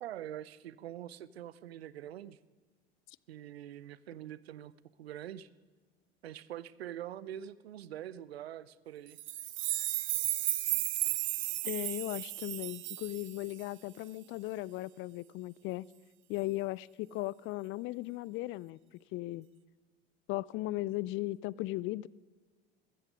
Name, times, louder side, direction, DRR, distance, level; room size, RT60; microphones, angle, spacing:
voice 1, 0.0-2.4 3.3-4.7 5.0-5.5 6.2-9.2, right 11 dB, 80° right, 19 dB, 0.6 m, -44 dB
sound 1, 9.2-13.6, right 15 dB, 40° right, 0.7 m, -34 dB
voice 2, 11.6-15.9 16.3-18.8 19.1-19.5 20.3-22.1, left 18 dB, 40° left, 23 dB, 0.4 m, -37 dB
14.5 x 14.0 x 5.2 m, 1.4 s
figure-of-eight pair, 70°, 31 cm